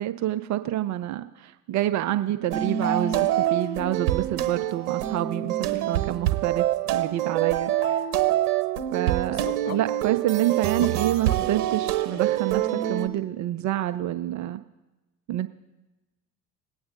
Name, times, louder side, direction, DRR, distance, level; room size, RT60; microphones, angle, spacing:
voice 1, 0.0-6.7 6.9-8.1 8.9-12.6 12.9-14.6 15.3-15.5, right 13 dB, 40° right, 9 dB, 0.5 m, -28 dB
sound 1, 2.5-13.1, right 12 dB, 65° right, 1.0 m, -26 dB
voice 2, 9.3-9.8 10.8-10.9 11.2-11.4 12.1-12.2, left 5 dB, 40° left, 1 dB, 1.8 m, -36 dB
20.5 x 8.7 x 2.6 m, 1.1 s
figure-of-eight pair, 60°, 45 cm